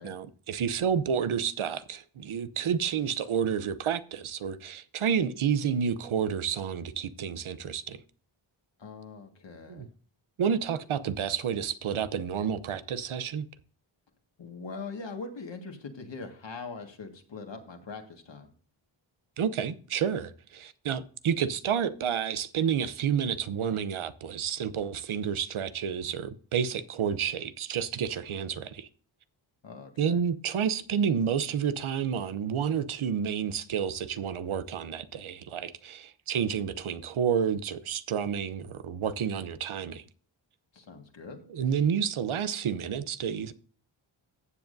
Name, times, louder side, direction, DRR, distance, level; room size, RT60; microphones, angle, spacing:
voice 1, 0.0-8.0 9.7-9.9 10.4-13.4 19.4-28.9 30.0-40.0 41.5-43.5, right 7 dB, 80° right, 0.8 m, -30 dB
voice 2, 8.8-9.9 14.4-18.5 29.6-30.2 40.7-41.4, left 4 dB, 65° left, 1.8 m, -42 dB
15.0 x 7.2 x 2.6 m
cardioid pair, 60°, 48 cm